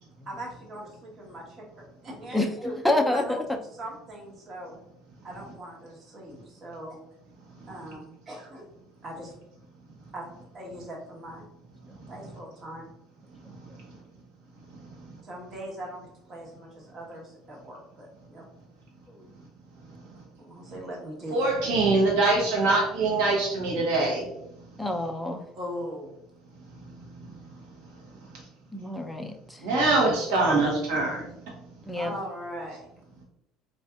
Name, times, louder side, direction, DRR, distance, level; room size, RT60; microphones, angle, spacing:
voice 1, 0.3-1.6 2.0-2.7 3.0-4.7 5.2-7.0 7.7-8.6 9.0-9.3 10.1-10.2 10.5-11.5 12.1-12.9 15.2-16.0 16.3-18.4 20.4-21.5 25.5-26.1 31.9-32.8, equal, 40° right, -1 dB, 1.1 m, -40 dB
voice 2, 2.8-3.4 19.1-19.2 24.8-25.4 28.7-29.7 31.8-32.1, left 2 dB, ahead, 2 dB, 0.4 m, -27 dB
voice 3, 21.3-24.2 29.6-31.2, right 3 dB, 85° right, -2 dB, 1.2 m, -23 dB
4.1 x 2.5 x 2.3 m, 0.79 s
cardioid pair, 115°, 0 cm